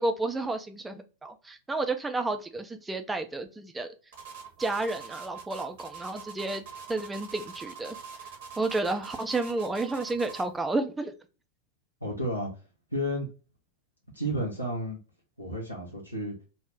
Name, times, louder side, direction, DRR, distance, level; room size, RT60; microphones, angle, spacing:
voice 1, 0.0-3.9 4.6-6.6 6.9-8.0 8.6-11.1, right 2 dB, 10° right, 7 dB, 0.4 m, -31 dB
sound 1, 4.1-10.5, right 6 dB, 55° right, 0.8 m, -44 dB
voice 2, 12.0-12.5 12.9-13.3 14.1-15.0 15.4-16.3, equal, 90° right, -3 dB, 0.6 m, -31 dB
2.4 x 2.0 x 3.2 m, 0.33 s
figure-of-eight pair, 90°, 0 cm